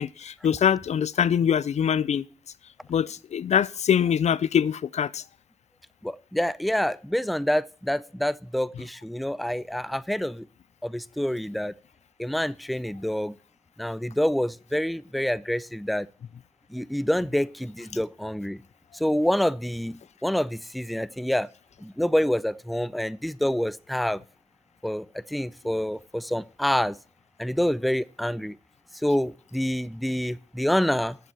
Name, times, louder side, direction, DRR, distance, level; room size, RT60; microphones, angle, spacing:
voice 1, 0.0-2.2 2.9-5.2, left 8 dB, 75° left, 0.4 m, -23 dB
voice 2, 6.0-10.5 10.8-11.7 12.2-13.3 13.8-16.1 16.7-18.6 18.9-21.5 21.8-24.2 24.8-27.0 27.4-28.6 29.0-31.2, equal, ahead, 0.4 m, -27 dB
7.4 x 6.9 x 7.6 m
cardioid pair, 55°, 12 cm